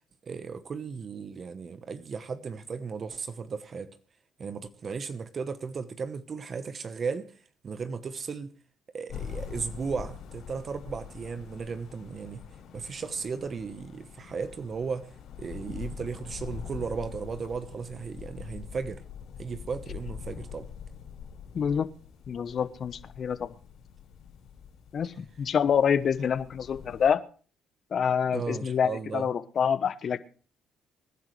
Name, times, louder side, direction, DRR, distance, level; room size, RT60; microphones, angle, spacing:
voice 1, 0.2-3.9 4.4-8.5 8.9-12.4 12.7-19.0 19.4-20.7 28.3-29.3, right 5 dB, 45° right, 1.0 m, -36 dB
sound 1, 9.1-27.1, left 7 dB, 70° left, 6.4 m, -44 dB
voice 2, 21.5-21.9 22.3-23.5 24.9-27.2 27.9-30.2, left 7 dB, 50° left, 1.0 m, -27 dB
25.0 x 10.5 x 3.2 m
supercardioid pair, 75°, 0 cm